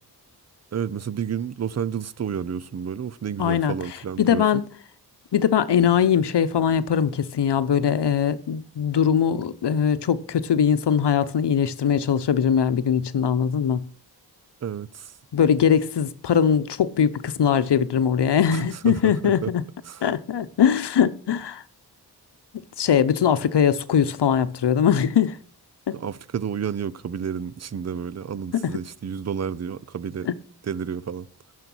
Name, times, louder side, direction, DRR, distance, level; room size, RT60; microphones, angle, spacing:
voice 1, 0.7-4.6 14.6-15.1 18.5-19.5 19.9-20.0 25.9-30.3 30.6-31.3, right 7 dB, 40° right, 0.6 m, -30 dB
voice 2, 3.4-3.7 4.2-4.6 5.3-13.8 15.3-19.7 20.0-21.6 22.8-25.4 25.9-26.0 28.5-28.8 30.3-30.4, left 8 dB, 80° left, 0.8 m, -21 dB
11.0 x 6.6 x 6.1 m
wide cardioid pair, 95°, 40 cm